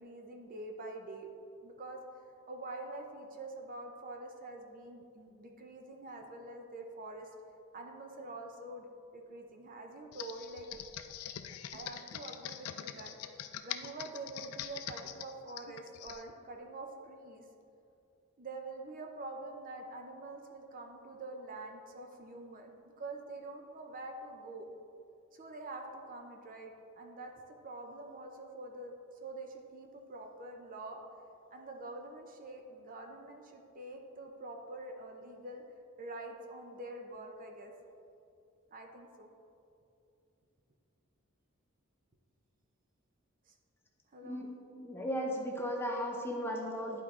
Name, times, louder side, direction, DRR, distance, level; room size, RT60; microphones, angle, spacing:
voice 1, 0.0-1.3 1.6-2.0 2.5-7.3 7.7-8.9 9.1-10.7 11.7-17.5 18.4-24.7 25.3-29.0 29.2-31.0 31.5-35.6 36.0-37.7 38.7-39.3 43.5-43.6 44.1-44.4, right 2 dB, 40° right, 3 dB, 0.6 m, -46 dB
Computer keyboard, 10.1-16.2, left 10 dB, 90° left, 0.4 m, -43 dB
voice 2, 44.2-47.0, equal, 10° left, 0 dB, 0.7 m, -36 dB
11.0 x 4.5 x 3.7 m, 2.6 s
head